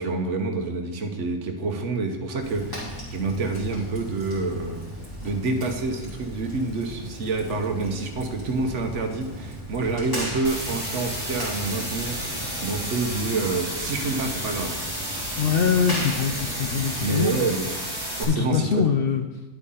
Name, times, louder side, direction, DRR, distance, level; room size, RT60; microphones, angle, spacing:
voice 1, 0.0-4.8 5.2-14.9 17.0-17.7 18.2-18.9, right 3 dB, 65° right, 5 dB, 1.2 m, -28 dB
Fire, 2.4-17.3, equal, 15° left, 3.3 m, -37 dB
sound 1, 10.4-18.2, equal, 20° right, 3.2 m, -32 dB
voice 2, 15.4-17.3 18.3-19.2, left 6 dB, 60° left, 6 dB, 0.6 m, -23 dB
10.5 x 8.1 x 3.8 m, 1.1 s
omnidirectional pair, 1.4 m